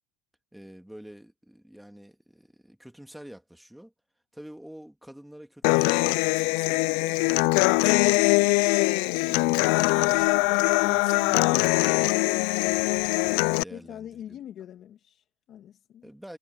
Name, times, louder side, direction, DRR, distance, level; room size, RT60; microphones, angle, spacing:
voice 1, 0.5-3.9 4.3-8.6 9.2-13.1 13.6-14.4 16.0-16.4, equal, 5° right, 2.2 m, -47 dB
Human voice / Acoustic guitar, 5.6-13.6, left 28 dB, 75° left, 0.4 m, -22 dB
voice 2, 13.7-16.1, left 10 dB, 50° left, 2.1 m, -43 dB
supercardioid pair, 105°, 0 cm